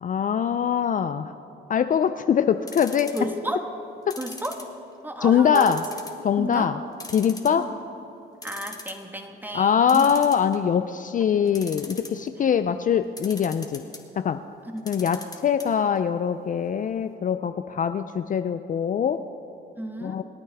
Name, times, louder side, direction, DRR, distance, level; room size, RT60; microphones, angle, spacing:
voice 1, 0.0-1.3 1.7-3.1 4.1-4.2 5.2-5.8 6.2-6.8 7.1-7.7 9.5-13.8 14.2-14.4 14.9-19.2 20.0-20.2, left 8 dB, 40° left, 10 dB, 0.4 m, -23 dB
sound 1, 2.7-3.4 4.1-5.1 5.5-6.2 6.6-6.7 7.0-7.8 8.2-8.3 8.4-9.0 9.9-10.8 11.5-12.3 13.2-14.0 14.8-15.7 16.0-16.1 16.3-16.4, left 2 dB, 20° left, 1.7 m, -40 dB
voice 2, 3.1-3.6 4.2-4.6 5.0-5.8 6.4-6.7 7.6-7.7 8.4-10.1 14.7-14.8 19.8-20.2, right 1 dB, 10° right, 4 dB, 1.5 m, -32 dB
27.5 x 9.9 x 3.5 m, 2.9 s
cardioid pair, 90°, 20 cm